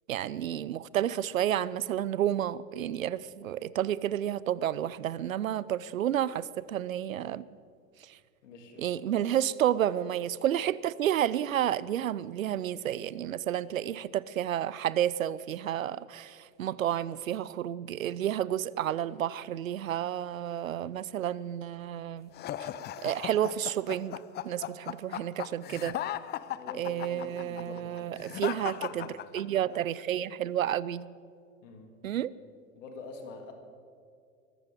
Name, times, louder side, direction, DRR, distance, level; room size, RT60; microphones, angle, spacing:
voice 1, 0.1-7.4 8.0-8.2 8.8-22.3 22.6-22.7 23.0-24.2 24.4-26.0 26.7-31.0 32.0-32.3, right 11 dB, 80° right, 0.6 m, -31 dB
voice 2, 8.4-8.8 26.5-29.2 31.6-31.9 32.8-33.5, left 3 dB, 65° left, 3.0 m, -47 dB
sound 1, 22.3-29.8, left 12 dB, 25° left, 0.5 m, -37 dB
23.0 x 15.0 x 3.7 m
figure-of-eight pair, 85°, 40 cm